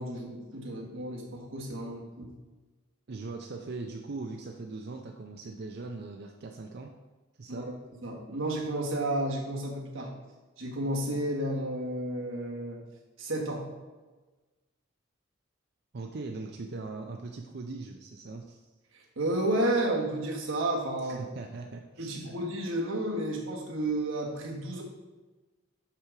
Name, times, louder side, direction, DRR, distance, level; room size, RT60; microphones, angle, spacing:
voice 1, 0.0-2.3 7.5-7.7 8.0-10.1 10.6-12.8 13.2-13.6 18.9-21.2 22.0-24.8, right 1 dB, 90° right, -1 dB, 1.5 m, -31 dB
voice 2, 3.1-6.9 7.4-7.7 15.9-18.6 21.0-22.3, right 3 dB, 55° right, 3 dB, 0.5 m, -40 dB
6.1 x 5.7 x 4.8 m, 1.2 s
head